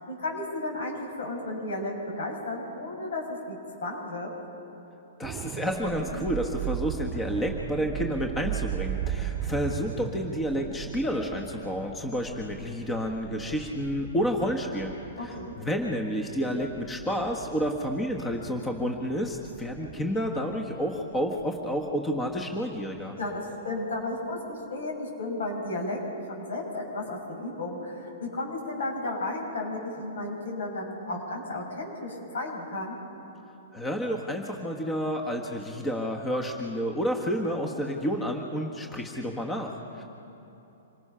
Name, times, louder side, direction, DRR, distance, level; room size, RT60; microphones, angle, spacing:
voice 1, 0.0-3.2 3.5-4.3 15.2-15.6 23.2-26.0 26.3-33.0 39.9-40.1, left 2 dB, 75° left, -1 dB, 6.8 m, -33 dB
voice 2, 5.2-23.2 33.7-40.0, equal, 15° left, 3 dB, 1.4 m, -30 dB
sound 1, 5.2-23.1 23.5-23.7, right 10 dB, 35° right, 0.8 m, -38 dB
26.5 x 19.0 x 5.7 m, 3.0 s
hypercardioid pair, 135°, 0 cm